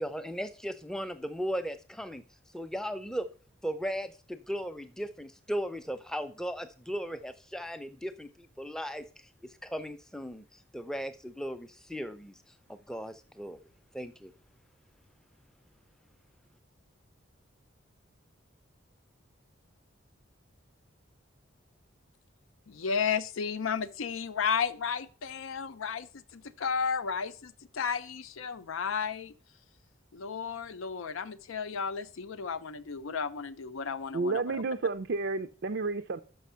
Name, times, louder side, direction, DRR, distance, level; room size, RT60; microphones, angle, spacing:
voice 1, 0.0-2.2 2.5-3.3 3.6-13.6 13.9-14.3, equal, 5° left, 0.5 m, -37 dB
voice 2, 22.7-26.1 26.3-29.3 30.1-34.6, left 6 dB, 80° left, 0.5 m, -33 dB
voice 3, 34.1-36.2, right 3 dB, 60° right, 0.4 m, -31 dB
6.2 x 5.7 x 5.6 m
head